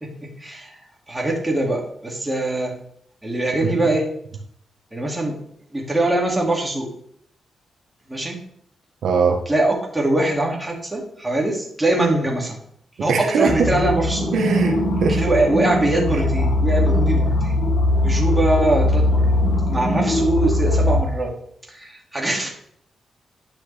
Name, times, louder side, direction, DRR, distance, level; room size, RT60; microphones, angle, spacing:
voice 1, 0.0-0.8 1.1-2.7 3.2-4.1 4.9-5.4 5.7-6.9 8.1-8.4 9.5-12.6 13.0-14.3 15.1-17.6 18.0-19.4 19.7-21.3 21.7-22.5, right 2 dB, 10° right, 0 dB, 2.3 m, -22 dB
voice 2, 9.0-9.4 13.1-13.7 14.3-15.2, right 5 dB, 85° right, 3 dB, 1.1 m, -20 dB
sound 1, 13.5-21.0, left 1 dB, 85° left, 2.4 m, -20 dB
10.0 x 5.8 x 3.4 m, 0.66 s
cardioid pair, 105°, 0 cm